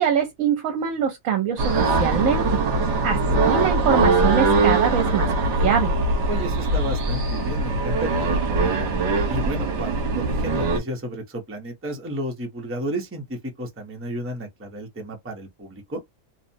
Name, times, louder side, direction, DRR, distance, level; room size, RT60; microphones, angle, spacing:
voice 1, 0.0-2.6 3.0-5.9, right 8 dB, 75° right, 1.0 m, -24 dB
sound 1, 1.6-10.8, right 2 dB, 60° right, 1.1 m, -22 dB
voice 2, 2.7-3.4 6.3-8.9 9.3-16.0, right 1 dB, 15° right, 0.5 m, -33 dB
3.0 x 2.0 x 2.6 m
omnidirectional pair, 1.5 m